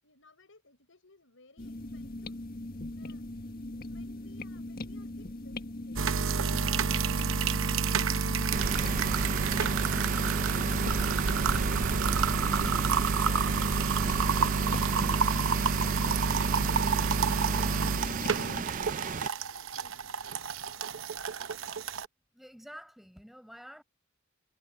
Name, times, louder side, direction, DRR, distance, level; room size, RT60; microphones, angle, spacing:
voice 1, 0.0-2.4 3.0-3.3 3.8-8.4 18.9-20.0, left 3 dB, 75° left, 6.0 m, -61 dB
sound 1, 1.6-18.6, left 1 dB, 50° left, 1.6 m, -40 dB
sound 2, 6.0-22.1, right 5 dB, 85° right, 0.8 m, -29 dB
Rain, 8.5-19.3, right 5 dB, 40° right, 0.5 m, -35 dB
voice 2, 22.3-23.8, equal, ahead, 7.3 m, -49 dB
head